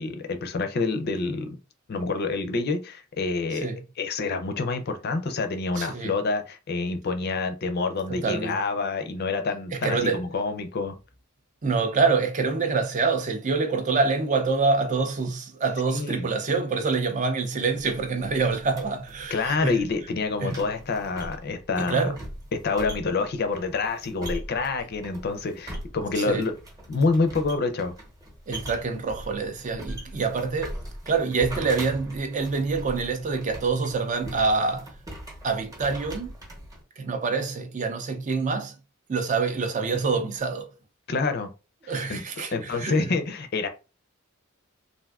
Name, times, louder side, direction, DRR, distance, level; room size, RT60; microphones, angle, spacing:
voice 1, 0.0-1.6 1.9-3.7 4.0-11.0 15.9-16.3 19.3-22.1 22.5-26.5 26.9-27.9 41.1-41.5 42.1-42.2 42.5-43.7, left 3 dB, 50° left, 0.5 m, -27 dB
voice 2, 5.8-6.2 8.1-8.6 9.8-10.2 11.6-19.8 20.4-20.5 21.8-22.2 26.2-26.4 28.5-30.7 31.1-34.9 35.4-36.3 37.0-38.7 39.1-40.7 41.9-43.0, right 4 dB, 35° right, 0.4 m, -26 dB
sound 1, 17.8-36.8, equal, 15° right, 0.8 m, -41 dB
3.4 x 2.5 x 2.4 m
head